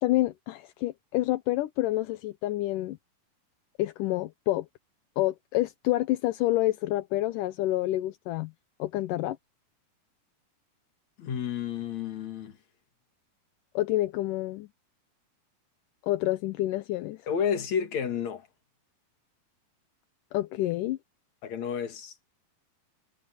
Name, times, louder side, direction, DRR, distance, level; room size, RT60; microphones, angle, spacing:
voice 1, 0.0-3.0 3.8-4.7 5.2-8.5 8.8-9.4 13.8-14.7 16.0-17.2 20.3-21.0, left 16 dB, 75° left, 2.1 m, -28 dB
voice 2, 11.2-12.6 17.3-18.5 21.4-22.1, left 7 dB, 50° left, 3.1 m, -31 dB
omnidirectional pair, 4.3 m